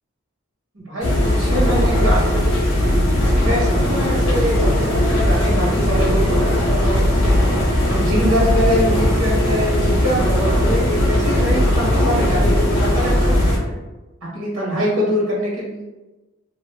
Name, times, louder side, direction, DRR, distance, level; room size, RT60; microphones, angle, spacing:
voice 1, 0.7-2.2 3.3-13.5 14.3-15.8, equal, 70° right, -5 dB, 1.2 m, -24 dB
sound 1, 1.0-13.6, left 1 dB, 65° left, 1.1 m, -18 dB
2.8 x 2.5 x 3.1 m, 1.1 s
head